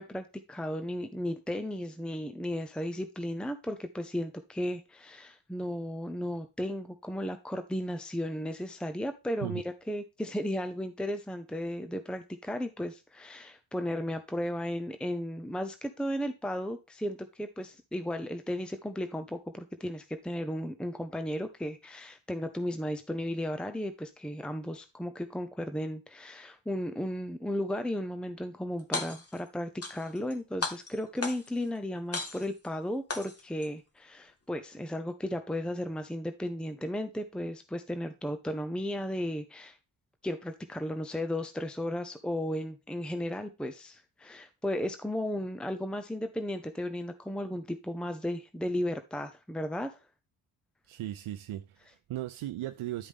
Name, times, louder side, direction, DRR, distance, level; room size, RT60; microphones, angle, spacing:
voice 1, 0.0-39.8 40.2-50.0, left 1 dB, ahead, 0.8 m, -35 dB
sound 1, 28.8-29.4 29.8-30.3 30.6-31.6 32.1-32.7 33.1-33.7, left 3 dB, 30° left, 1.6 m, -35 dB
voice 2, 50.9-53.1, right 13 dB, 80° right, 0.6 m, -37 dB
11.5 x 5.0 x 3.6 m
cardioid pair, 70°, 48 cm